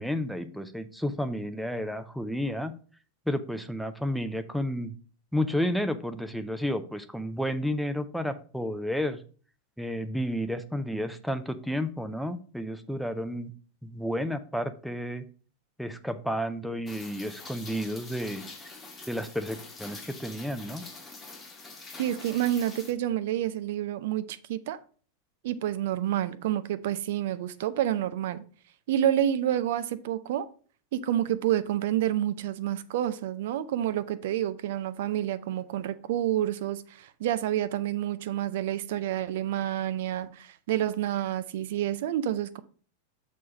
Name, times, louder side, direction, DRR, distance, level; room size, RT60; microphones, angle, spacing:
voice 1, 0.0-2.7 3.3-5.0 5.3-9.2 9.8-13.5 13.8-15.3 15.8-18.7 19.1-20.8, equal, ahead, 0.6 m, -31 dB
Rain, 16.9-22.9, left 3 dB, 15° left, 1.5 m, -45 dB
voice 2, 22.0-24.8 25.4-28.4 28.9-30.5 30.9-42.6, right 11 dB, 55° right, 0.5 m, -29 dB
6.4 x 4.2 x 5.0 m
figure-of-eight pair, 90°, 0 cm